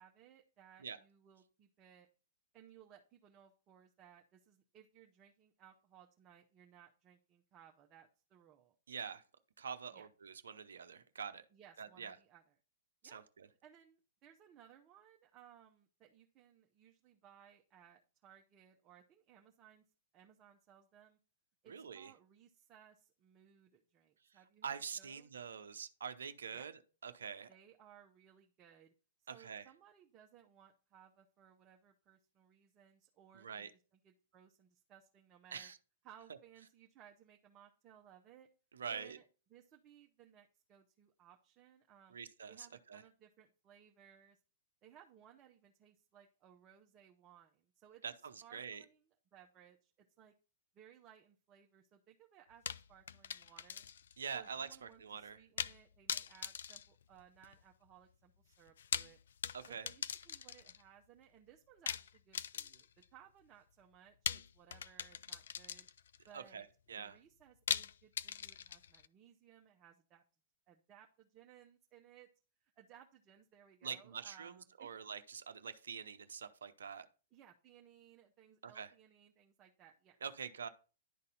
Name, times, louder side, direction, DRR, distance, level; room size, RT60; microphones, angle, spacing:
voice 1, 0.0-2.1 2.5-8.8 9.9-10.1 11.5-12.5 13.0-13.2 13.6-19.8 20.1-21.2 21.6-25.3 26.5-26.7 27.5-28.9 29.2-35.7 36.0-38.5 38.9-42.2 42.5-44.4 44.8-50.3 50.7-53.9 54.3-59.2 59.7-65.9 66.3-66.7 67.0-70.2 70.7-72.3 72.6-74.9 77.3-80.2, right 9 dB, 30° right, 1 dB, 0.9 m, -62 dB
voice 2, 8.9-9.2 9.6-11.4 11.8-12.2 13.0-13.5 21.7-22.1 24.6-26.7 27.0-27.5 29.3-29.7 33.3-33.7 35.5-35.8 38.7-39.2 42.1-43.0 48.0-48.8 54.2-55.4 59.5-59.9 66.3-67.2 73.8-77.1 78.6-78.9 80.2-80.7, right 6 dB, 75° right, 8 dB, 0.7 m, -45 dB
sound 1, 52.7-54.2 54.5-54.6 55.6-55.8 56.1-57.6 58.7-60.8 61.9-63.0 64.3-66.2 67.7-69.1, left 8 dB, 70° left, 0.4 m, -41 dB
11.0 x 4.1 x 3.9 m, 0.36 s
figure-of-eight pair, 110°, 0 cm